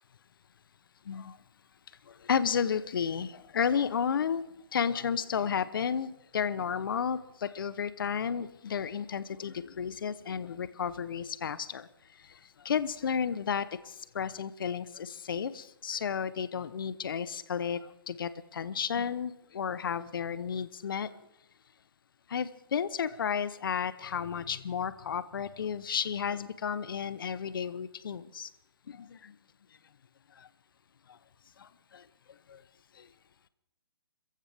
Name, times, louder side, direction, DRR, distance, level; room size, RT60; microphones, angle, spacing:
voice 1, 2.2-4.4 4.7-11.9 12.6-13.7 14.1-17.8 18.1-21.1 22.3-28.5 29.2-29.3 31.9-32.0 32.5-32.6, left 7 dB, 65° left, 0.9 m, -32 dB
27.0 x 15.0 x 3.5 m
hypercardioid pair, 140°, 12 cm